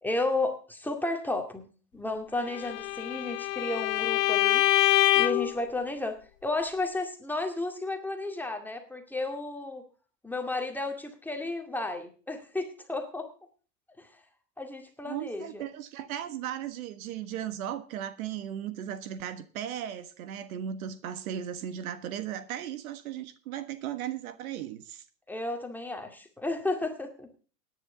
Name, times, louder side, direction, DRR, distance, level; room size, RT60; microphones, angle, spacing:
voice 1, 0.0-1.7 1.9-4.6 5.2-9.8 10.2-13.3 14.0-14.1 14.6-15.6 25.3-27.3, left 2 dB, 5° left, 2.1 m, -33 dB
Bowed string instrument, 2.5-5.5, left 17 dB, 80° left, 0.6 m, -25 dB
voice 2, 15.0-25.0, right 10 dB, 60° right, 1.4 m, -36 dB
18.0 x 10.0 x 3.8 m
hypercardioid pair, 125°, 48 cm